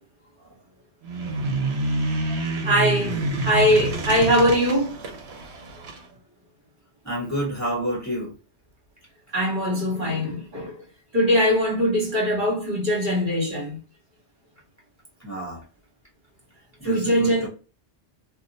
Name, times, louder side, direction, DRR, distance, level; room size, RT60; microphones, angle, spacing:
sound 1, 1.0-6.0, right 2 dB, 70° right, 0.9 m, -28 dB
voice 1, 2.3-4.9 9.3-10.8 11.1-13.8 16.8-17.5, equal, 45° right, 1.1 m, -22 dB
voice 2, 7.0-8.3 15.2-15.6 16.8-17.5, right 1 dB, 15° left, 1.0 m, -29 dB
2.3 x 2.1 x 3.8 m
omnidirectional pair, 1.2 m